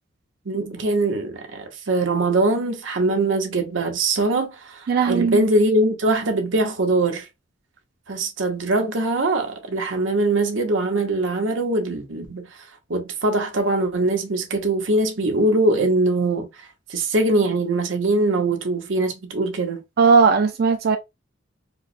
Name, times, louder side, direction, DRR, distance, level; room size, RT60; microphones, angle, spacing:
voice 1, 0.5-7.3 8.1-12.5 12.9-19.8, right 2 dB, 90° right, 0.9 m, -22 dB
voice 2, 4.9-5.4 20.0-21.0, right 5 dB, 55° right, 0.3 m, -17 dB
4.6 x 2.1 x 2.5 m
head